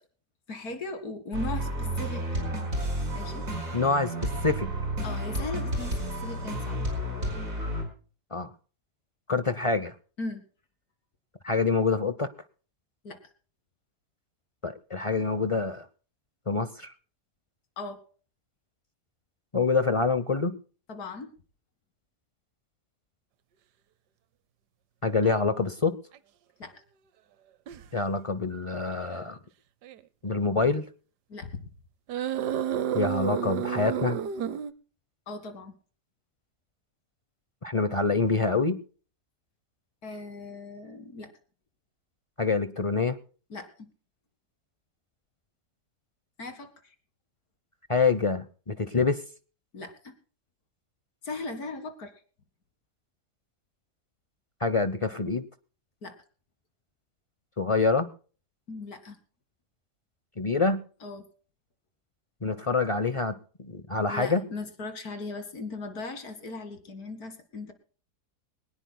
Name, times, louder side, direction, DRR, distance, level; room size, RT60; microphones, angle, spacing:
voice 1, 0.5-2.6 3.1-3.5 5.0-6.9 10.2-10.4 13.0-13.2 17.8-18.0 20.9-21.3 26.6-26.7 31.3-31.7 35.3-35.7 40.0-41.3 43.5-43.9 46.4-46.9 49.7-50.1 51.2-52.1 56.0-56.2 58.7-59.2 61.0-61.2 64.1-67.7, left 3 dB, 65° left, 9 dB, 2.4 m, -38 dB
sound 1, 1.3-7.8, right 1 dB, 55° right, 5.3 m, -31 dB
voice 2, 3.7-4.7 8.3-8.5 9.3-9.9 11.4-12.3 14.6-15.9 16.5-16.9 19.5-20.5 25.0-25.9 27.9-29.4 30.2-30.8 32.9-34.2 37.6-38.8 42.4-43.2 47.9-49.2 54.6-55.4 57.6-58.1 60.4-60.8 62.4-63.3 63.6-64.4, left 4 dB, 35° left, 12 dB, 0.5 m, -26 dB
sound 2, 25.2-25.4 26.1-26.2 27.7-27.9 28.9-29.2 29.8-30.0 32.1-34.7, right 9 dB, 85° right, 1.4 m, -30 dB
22.0 x 19.0 x 2.2 m, 0.40 s
omnidirectional pair, 1.7 m